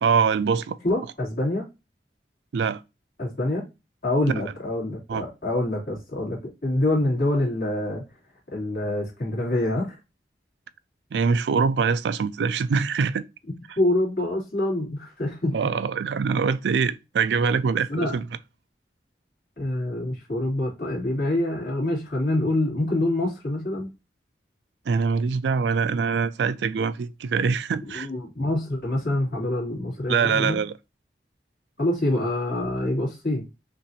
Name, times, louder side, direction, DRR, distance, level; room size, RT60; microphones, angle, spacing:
voice 1, 0.0-0.8 2.5-2.8 5.1-5.2 11.1-13.2 15.5-18.2 24.9-28.1 30.1-30.7, right 5 dB, 75° right, 0.4 m, -23 dB
voice 2, 0.8-1.6 3.2-3.6 4.0-8.0 8.5-9.9 13.8-15.7 17.9-18.2 19.6-23.9 27.8-30.6 31.8-33.5, left 1 dB, 55° left, 2.4 m, -26 dB
5.7 x 2.6 x 2.8 m
head